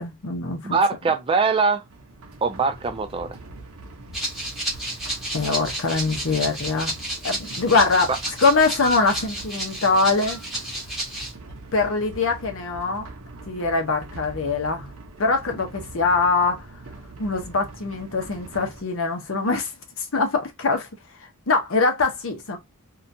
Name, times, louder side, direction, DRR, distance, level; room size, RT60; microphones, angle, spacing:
voice 1, 0.0-0.8 5.3-6.9 7.2-8.1 8.4-10.4 11.7-13.1 13.5-14.9 15.2-16.6 17.2-19.7 20.0-20.9 21.5-22.6, left 3 dB, 65° left, 0.8 m, -23 dB
voice 2, 0.6-1.8 2.4-3.4, right 4 dB, 25° right, 0.3 m, -22 dB
sound 1, 1.8-18.8, right 2 dB, 75° right, 0.6 m, -42 dB
Rattle (instrument), 4.1-11.3, right 1 dB, ahead, 0.9 m, -31 dB
sound 2, 8.2-9.4 10.2-10.5 11.5-11.6, left 1 dB, 40° left, 1.2 m, -34 dB
2.8 x 2.3 x 2.6 m
head